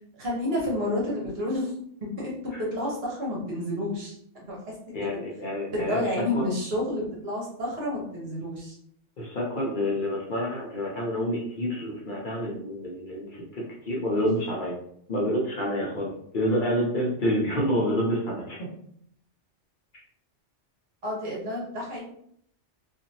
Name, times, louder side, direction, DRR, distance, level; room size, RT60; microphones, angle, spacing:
voice 1, 0.1-1.7 2.0-2.3 2.6-4.2 4.5-4.7 5.0-5.1 5.7-8.7 21.0-22.0, left 1 dB, 60° right, -4 dB, 1.2 m, -30 dB
voice 2, 4.9-6.0 6.3-6.5 9.2-14.8 15.1-18.7, equal, 50° left, -4 dB, 0.8 m, -28 dB
2.8 x 2.5 x 2.7 m, 0.67 s
omnidirectional pair, 1.2 m